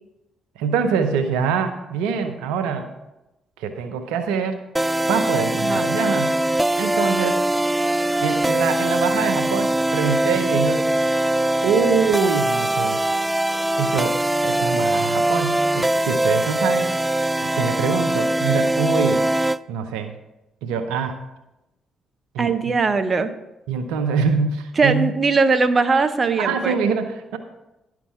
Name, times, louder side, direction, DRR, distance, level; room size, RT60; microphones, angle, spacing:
voice 1, 0.6-2.9 3.6-4.6 5.1-6.4 6.8-7.4 8.2-11.0 11.6-13.0 13.8-14.2 14.4-16.9 17.5-19.2 19.7-20.1 20.6-21.2 22.3-22.7 23.7-25.1 26.4-27.4, right 6 dB, 80° right, 7 dB, 0.7 m, -24 dB
sound 1, 4.8-19.6, right 1 dB, 15° right, 0.3 m, -21 dB
voice 2, 22.4-23.3 24.8-26.8, right 4 dB, 40° right, 9 dB, 0.9 m, -20 dB
11.0 x 6.0 x 5.8 m, 0.95 s
hypercardioid pair, 50°, 0 cm